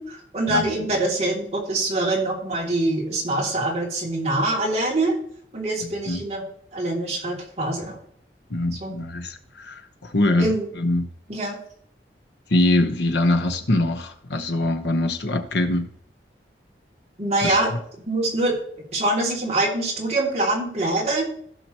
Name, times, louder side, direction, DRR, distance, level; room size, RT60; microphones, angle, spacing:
voice 1, 0.0-5.2 5.5-6.4 6.7-8.0 8.8-8.9 10.4-10.7 11.3-11.6 17.2-17.7 18.1-18.6 18.9-21.3, right 2 dB, 40° right, -3 dB, 2.7 m, -24 dB
voice 2, 8.5-11.1 12.5-15.9 17.4-17.6, left 1 dB, 80° left, 5 dB, 1.1 m, -23 dB
16.0 x 5.9 x 3.0 m, 0.63 s
head